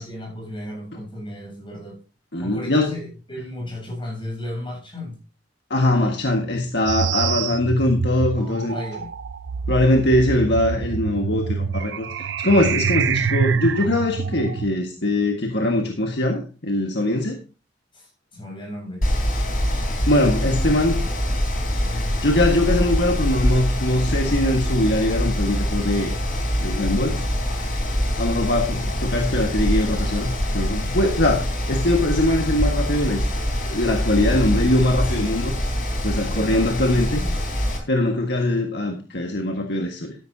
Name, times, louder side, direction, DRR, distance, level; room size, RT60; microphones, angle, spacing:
voice 1, 0.0-2.0 2.4-5.2 5.9-6.2 8.3-9.1 17.9-19.0 21.8-22.2 28.7-28.9 36.3-37.3, left 1 dB, 25° left, 7.7 m, -35 dB
voice 2, 2.3-2.9 5.7-8.8 9.7-17.4 20.1-21.0 21.9-26.1 26.6-27.2 28.2-33.2 33.6-35.5 36.0-37.2 37.9-40.1, left 1 dB, 65° left, 1.6 m, -22 dB
sound 1, 6.9-14.7, right 6 dB, 70° right, 0.5 m, -26 dB
Mechanical fan, 19.0-37.8, equal, 50° left, 3.9 m, -24 dB
13.0 x 11.0 x 2.8 m
head